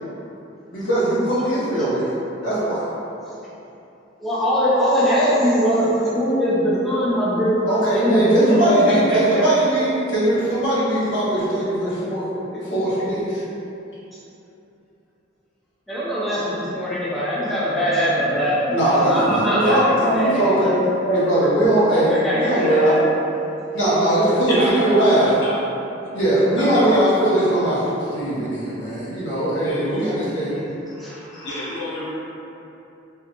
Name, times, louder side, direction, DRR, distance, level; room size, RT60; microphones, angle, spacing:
voice 1, 0.7-2.1 2.4-2.9 7.7-12.3 12.7-13.4 18.7-20.8 21.1-22.9 23.7-25.3 26.1-30.6 31.3-31.7, right 1 dB, 65° left, -10 dB, 1.0 m, -20 dB
voice 2, 4.2-7.6 7.9-9.5 14.1-14.2 15.9-19.8 20.1-20.8 21.4-21.5 22.1-23.0 30.9-31.3, equal, ahead, -11 dB, 0.6 m, -21 dB
voice 3, 24.5-25.6 26.6-27.2 29.6-30.0 31.4-32.1, left 1 dB, 90° left, -7 dB, 0.7 m, -27 dB
2.7 x 2.4 x 3.7 m, 2.9 s
head